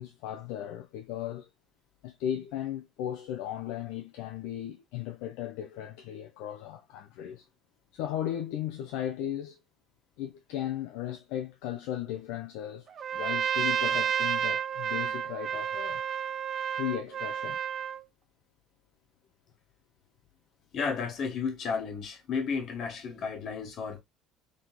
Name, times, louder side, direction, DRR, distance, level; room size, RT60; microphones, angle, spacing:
voice 1, 0.0-1.5 2.0-7.5 7.9-9.6 10.2-12.9 13.1-16.0 16.7-17.6, left 11 dB, 65° left, 0.5 m, -36 dB
Trumpet, 13.0-18.0, right 8 dB, 45° right, 0.4 m, -30 dB
voice 2, 20.7-24.0, left 5 dB, 50° left, 1.2 m, -33 dB
3.8 x 3.5 x 3.0 m
figure-of-eight pair, 65°, 0 cm